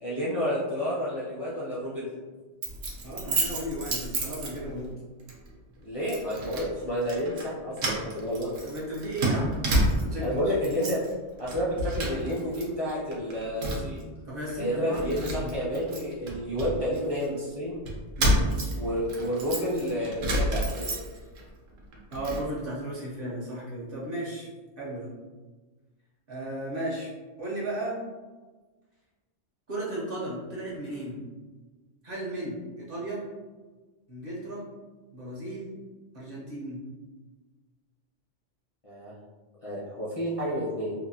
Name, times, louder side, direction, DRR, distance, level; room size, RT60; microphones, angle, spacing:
voice 1, 0.0-2.1 5.8-8.5 10.2-11.0 11.4-14.0 14.6-17.8 18.7-20.9 38.8-39.1 39.6-40.9, equal, 40° left, -9 dB, 0.5 m, -30 dB
Keys jangling, 2.6-4.9 5.3-5.5 6.1-6.7 7.0-7.5 7.8-10.3 10.6-11.1 11.4-12.6 12.9-14.0 14.5-14.6 14.9-17.3 17.9-21.4 21.8-22.4, right 1 dB, 75° right, 1.0 m, -30 dB
voice 2, 3.0-4.9 8.6-9.6 10.0-10.3 14.3-15.0 15.3-15.7 16.5-16.7 18.2-18.5 22.1-24.5 24.8-25.1 26.3-27.1 27.4-28.0 29.7-31.2 32.0-33.3 34.1-34.6 35.1-35.7 36.1-36.8, right 1 dB, 50° right, -6 dB, 0.8 m, -35 dB
2.7 x 2.4 x 2.7 m, 1.3 s
omnidirectional pair, 1.3 m